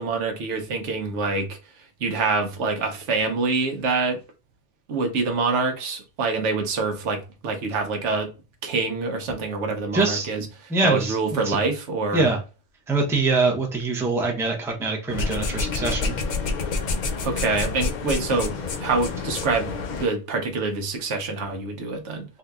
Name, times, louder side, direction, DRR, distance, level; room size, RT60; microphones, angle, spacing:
voice 1, 0.0-1.6 2.0-4.2 4.9-8.3 8.6-10.5 10.8-12.3 17.2-18.5 18.8-19.7 20.0-22.3, right 3 dB, 80° right, 1.0 m, -25 dB
voice 2, 9.9-10.3 10.7-11.6 12.1-12.4 12.9-16.2, right 3 dB, 5° right, 0.5 m, -24 dB
sound 1, 15.1-20.1, left 4 dB, 60° left, 0.5 m, -28 dB
3.6 x 2.7 x 2.3 m
omnidirectional pair, 1.2 m